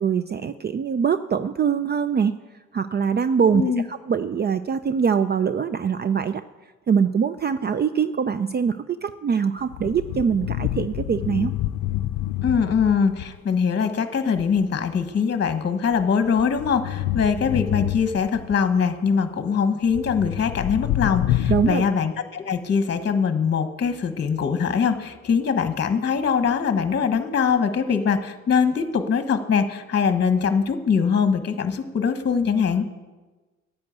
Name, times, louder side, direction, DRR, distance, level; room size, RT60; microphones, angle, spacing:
voice 1, 0.0-2.4 2.7-3.6 3.9-6.4 6.9-11.5 21.5-21.8, right 7 dB, 35° right, 13 dB, 0.5 m, -23 dB
voice 2, 3.4-3.8 12.4-32.8, left 6 dB, 35° left, 9 dB, 1.2 m, -22 dB
sound 1, 9.6-13.4 14.4-14.6 15.9-18.5 19.9-21.7, left 14 dB, 85° left, 0.5 m, -27 dB
10.5 x 9.3 x 8.0 m, 1.2 s
cardioid pair, 90°, 30 cm